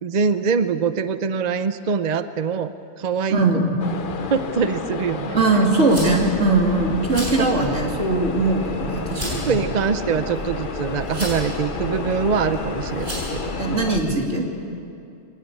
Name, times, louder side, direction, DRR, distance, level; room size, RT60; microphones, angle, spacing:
voice 1, 0.0-3.6 4.3-5.7 7.4-7.5 9.2-13.5, right 6 dB, 45° right, 11 dB, 0.7 m, -24 dB
voice 2, 3.3-3.7 5.3-9.6 13.6-14.4, right 2 dB, 80° right, 0 dB, 3.2 m, -20 dB
sound 1, 3.8-14.0, left 5 dB, 50° left, 0.9 m, -31 dB
sound 2, 5.9-14.1, equal, 60° right, 8.2 m, -33 dB
22.5 x 19.5 x 8.4 m, 2.5 s
omnidirectional pair, 1.2 m